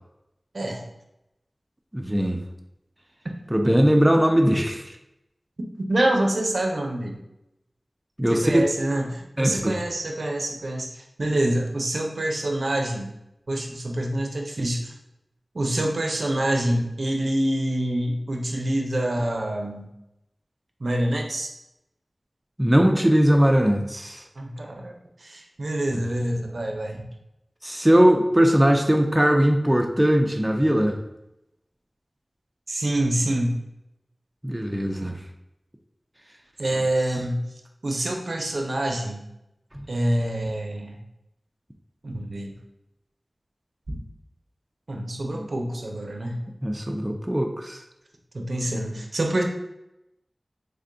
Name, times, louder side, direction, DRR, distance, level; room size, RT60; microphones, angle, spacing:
voice 1, 1.9-2.4 3.5-4.9 8.2-8.6 9.4-9.7 22.6-24.2 27.6-31.0 34.4-35.2 39.7-39.8 45.3-45.5 46.6-47.8, equal, 15° right, 3 dB, 0.4 m, -20 dB
voice 2, 5.9-7.2 8.3-13.1 13.5-14.9 15.5-19.9 20.8-21.5 24.4-24.9 25.2-27.0 32.7-33.6 36.6-37.4 37.8-39.2 39.9-41.0 42.0-42.5 43.9-44.0 44.9-46.4 48.3-49.4, right 1 dB, 75° right, 2 dB, 0.5 m, -26 dB
3.4 x 2.2 x 3.7 m, 0.87 s
wide cardioid pair, 60°, 0 cm